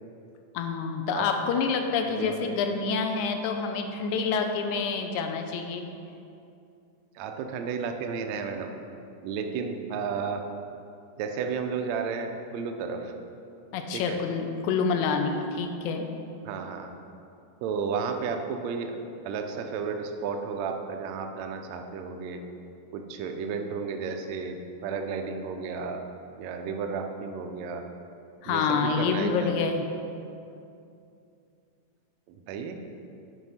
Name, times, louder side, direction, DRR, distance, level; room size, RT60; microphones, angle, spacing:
voice 1, 0.5-5.9 13.7-16.1 28.4-29.9, left 5 dB, 80° left, 5 dB, 1.9 m, -27 dB
voice 2, 2.0-2.6 7.1-8.7 9.2-10.4 11.2-13.1 13.9-14.2 16.4-16.9 17.6-19.0 19.2-22.4 22.9-24.6 24.8-26.0 26.4-27.8 28.5-29.5 32.5-32.8, right 5 dB, 85° right, 5 dB, 1.6 m, -32 dB
9.4 x 4.5 x 5.6 m, 2.6 s
omnidirectional pair, 3.7 m